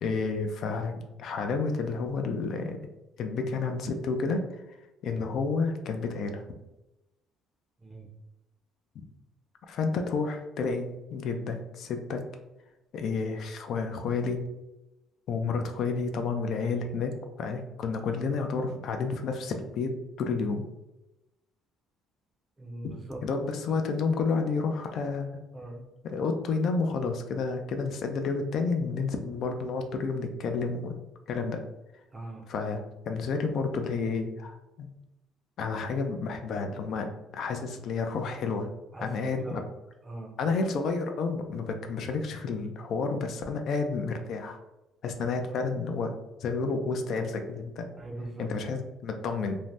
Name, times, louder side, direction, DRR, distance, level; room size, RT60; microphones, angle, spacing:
voice 1, 0.0-2.8 3.2-4.6 5.0-6.4 9.0-9.1 9.7-12.2 12.9-14.5 15.3-17.1 17.4-19.9 20.2-20.7 22.8-23.0 23.2-25.4 26.0-30.9 31.3-31.6 32.5-34.9 35.6-38.7 39.0-39.6 40.4-44.6 45.0-46.1 46.4-47.9 48.4-49.6, left 4 dB, 60° left, 5 dB, 0.3 m, -30 dB
voice 2, 22.6-23.2 25.5-25.8 32.1-32.5 38.9-39.7 40.0-40.3 48.0-48.5, right 1 dB, 20° right, 2 dB, 0.5 m, -40 dB
2.6 x 2.1 x 3.3 m, 0.96 s
cardioid pair, 115°, 0 cm